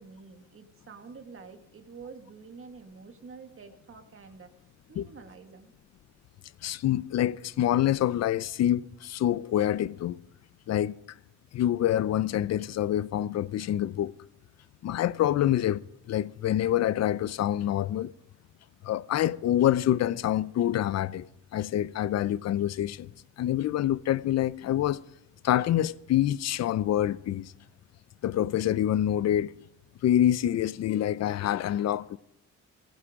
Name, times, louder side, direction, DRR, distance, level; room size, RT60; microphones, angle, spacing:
voice 1, 0.0-4.5 4.9-5.7, right 5 dB, 45° right, 2.0 m, -48 dB
voice 2, 6.6-10.2 10.7-10.9 11.5-14.2 14.8-18.1 18.8-21.3 21.5-23.1 23.4-25.0 25.4-27.5 28.2-29.5 30.0-32.2, left 12 dB, 60° left, 0.6 m, -26 dB
16.5 x 15.5 x 3.7 m
cardioid pair, 90°, 30 cm